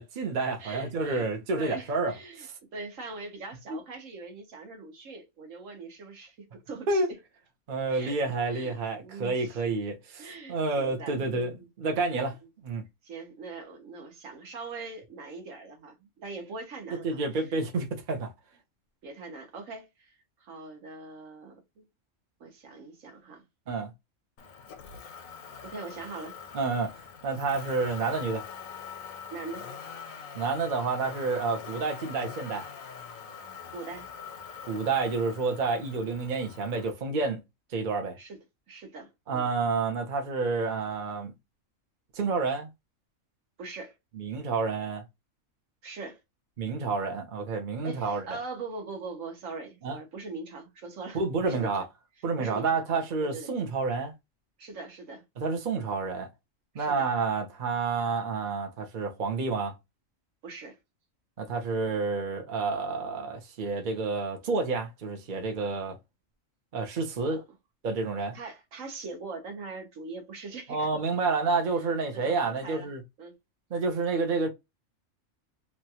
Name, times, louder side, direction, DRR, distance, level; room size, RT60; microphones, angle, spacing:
voice 1, 0.0-2.5 3.7-3.8 6.9-7.1 7.7-12.4 12.6-12.8 17.0-18.3 23.7-23.9 26.5-28.4 30.3-32.7 34.7-37.4 37.7-38.2 39.3-41.3 42.1-42.7 44.1-45.0 46.6-48.2 49.8-50.0 51.1-51.9 52.2-54.1 55.4-56.3 56.7-59.7 61.4-66.0 66.7-67.4 67.8-68.4 70.7-73.0 73.7-74.5, right 4 dB, 45° right, 0.8 m, -29 dB
voice 2, 0.6-1.3 1.6-7.0 7.9-8.1 8.5-9.8 10.2-11.7 13.0-17.6 19.0-21.9 22.4-23.4 25.6-26.3 29.3-29.7 33.7-34.1 38.2-38.4 38.7-39.5 43.6-43.9 45.8-46.2 47.8-51.8 52.4-53.5 54.6-55.2 56.7-57.1 60.4-60.8 67.3-67.4 68.3-70.9 72.1-72.9 73.2-73.4, right 3 dB, 75° right, 1.3 m, -42 dB
Motor vehicle (road), 24.4-36.9, left 6 dB, 85° left, 1.1 m, -43 dB
3.1 x 2.4 x 2.8 m
omnidirectional pair, 1.4 m